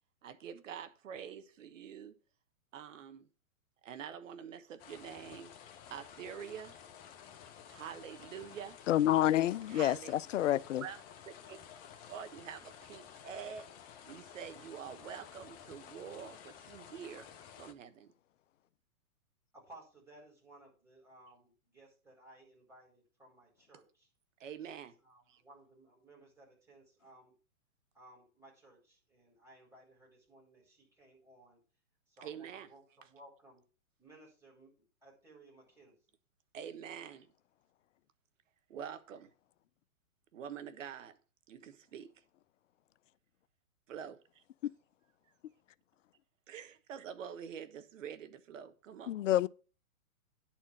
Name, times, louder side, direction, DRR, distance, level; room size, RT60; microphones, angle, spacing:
voice 1, 0.2-2.2 2.7-3.3 3.8-5.5 5.9-6.8 7.7-8.8 9.7-10.2 10.8-11.0 11.5-11.6 12.1-13.7 14.1-17.3 17.6-18.1 24.4-24.9 25.3-25.4 32.2-32.7 36.5-37.3 38.7-39.3 40.3-41.2 41.5-42.1 43.9-44.4 46.5-49.1, right 8 dB, 60° right, 1.3 m, -46 dB
sound 1, 4.8-17.7, left 8 dB, 20° left, 0.8 m, -53 dB
voice 2, 8.9-10.8 49.1-49.5, left 13 dB, 60° left, 0.5 m, -28 dB
voice 3, 19.5-24.1 24.6-24.7 25.0-27.3 27.9-31.6 32.1-33.6 34.0-34.7 35.0-36.0, right 1 dB, 5° right, 4.8 m, -59 dB
10.5 x 4.5 x 7.3 m
hypercardioid pair, 135°, 43 cm